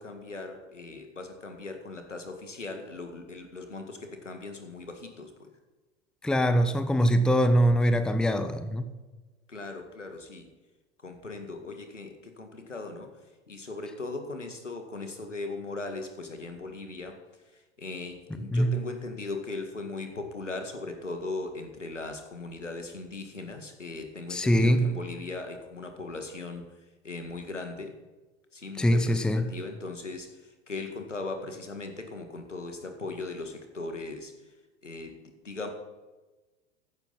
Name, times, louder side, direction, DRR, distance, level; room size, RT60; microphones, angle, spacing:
voice 1, 0.0-5.5 9.5-10.5 11.0-13.1 13.5-17.2 17.5-26.6 27.0-27.9 28.5-34.3 34.8-35.2 35.4-35.7, left 3 dB, 85° left, 6 dB, 2.0 m, -38 dB
voice 2, 6.2-8.8 18.5-18.8 24.3-24.9 28.8-29.4, equal, ahead, 10 dB, 0.7 m, -23 dB
14.5 x 11.5 x 4.2 m, 1.2 s
figure-of-eight pair, 90°, 36 cm